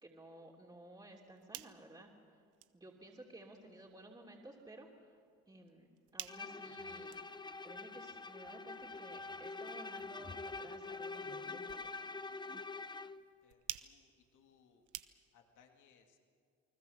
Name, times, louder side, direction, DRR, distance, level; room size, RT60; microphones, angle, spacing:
voice 1, 0.0-2.1 2.7-4.9 5.5-5.9 6.1-7.2 7.6-12.0, right 1 dB, 15° right, -2 dB, 3.1 m, -55 dB
sound 1, 1.1-15.6, right 14 dB, 85° right, 0.8 m, -54 dB
Bowed string instrument, 6.3-13.2, left 3 dB, 15° left, 0.7 m, -45 dB
voice 2, 13.4-14.9 15.3-16.2, left 7 dB, 85° left, 4 dB, 2.5 m, -68 dB
29.0 x 20.0 x 7.1 m, 2.1 s
cardioid pair, 90°, 30 cm